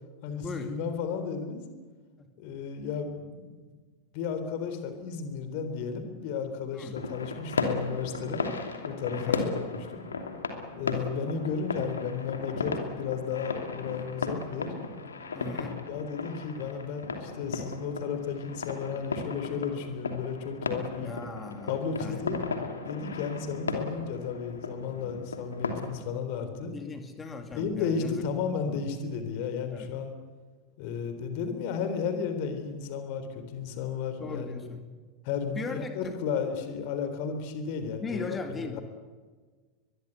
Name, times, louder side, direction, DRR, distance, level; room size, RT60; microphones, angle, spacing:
voice 1, 0.2-1.6 2.4-3.7 4.1-8.5 8.8-10.1 10.8-14.7 15.6-21.1 21.7-22.4 22.9-26.7 27.5-30.1 30.8-34.7 35.2-38.8, left 6 dB, 45° left, 8 dB, 3.7 m, -33 dB
sound 1, 6.9-25.9, left 4 dB, 70° left, 2.8 m, -35 dB
voice 2, 9.1-9.5 15.3-15.8 21.0-22.2 26.7-28.2 28.7-28.8 29.7-29.9 34.2-34.8 35.5-36.2 38.0-38.8, left 4 dB, 15° left, 6 dB, 2.5 m, -38 dB
23.0 x 22.0 x 8.3 m, 1.4 s
figure-of-eight pair, 90°, 0 cm